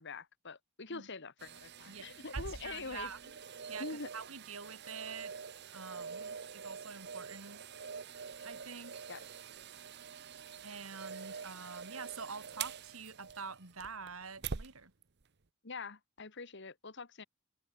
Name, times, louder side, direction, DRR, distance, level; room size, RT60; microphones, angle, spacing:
voice 1, 0.0-3.1 3.8-4.1 9.1-9.3 11.3-11.4 15.6-17.2, left 4 dB, 55° left, 1.8 m, -45 dB
sound 1, 1.4-14.7 15.2-15.3, right 6 dB, 55° right, 0.9 m, -45 dB
voice 2, 1.9-3.2 3.7-3.9 4.1-5.3 5.7-7.6 8.4-9.1 10.6-14.9, right 5 dB, 80° right, 3.5 m, -46 dB
head